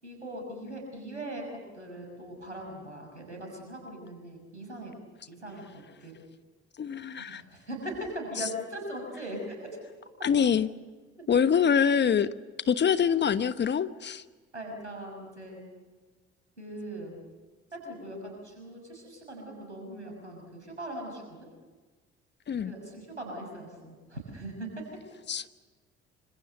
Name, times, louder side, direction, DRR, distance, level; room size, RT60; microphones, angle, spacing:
voice 1, 0.0-4.9 5.3-6.1 7.2-9.7 14.5-15.7 16.6-17.1 17.7-21.5 22.6-24.7, right 1 dB, 90° right, 2 dB, 6.2 m, -40 dB
voice 2, 6.8-7.4 10.2-10.7 11.3-12.3 12.7-14.2 22.5-22.7 25.3-25.5, left 7 dB, 30° left, 14 dB, 1.1 m, -25 dB
27.0 x 26.5 x 6.8 m, 1.3 s
figure-of-eight pair, 50°, 34 cm